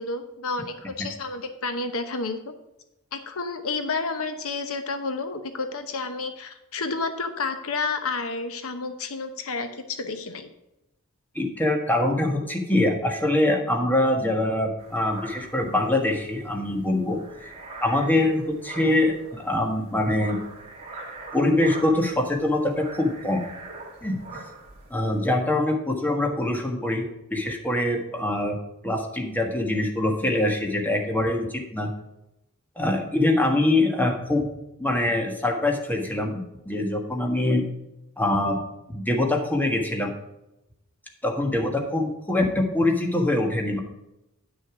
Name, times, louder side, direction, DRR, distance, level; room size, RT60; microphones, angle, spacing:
voice 1, 0.0-2.5 3.1-10.5, left 3 dB, 70° left, 8 dB, 0.9 m, -30 dB
voice 2, 11.3-17.5 17.8-20.4 21.3-23.4 24.0-24.2 24.9-28.6 28.8-31.9 32.8-34.5 34.8-37.6 38.2-38.6 38.9-40.1 41.2-43.8, left 1 dB, 10° left, 2 dB, 1.5 m, -24 dB
sound 1, 14.8-25.2, right 3 dB, 25° right, 2.6 m, -43 dB
9.6 x 6.5 x 4.8 m, 0.90 s
head